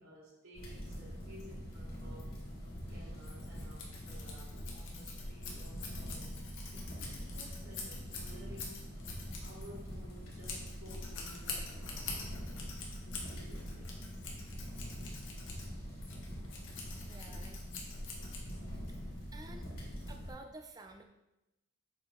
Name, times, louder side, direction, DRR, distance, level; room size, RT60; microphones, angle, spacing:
voice 1, 0.0-2.4 2.9-8.9 9.4-13.9 19.2-19.7, equal, 80° right, -4 dB, 2.4 m, -56 dB
sound 1, 0.5-20.3, equal, 80° left, 2.4 m, -44 dB
Scissors, 3.2-18.8, left 4 dB, 60° left, 1.4 m, -46 dB
voice 2, 17.1-17.6 18.9-19.7 20.1-21.0, right 2 dB, 15° right, 4 dB, 0.3 m, -52 dB
7.2 x 4.8 x 3.7 m, 0.95 s
head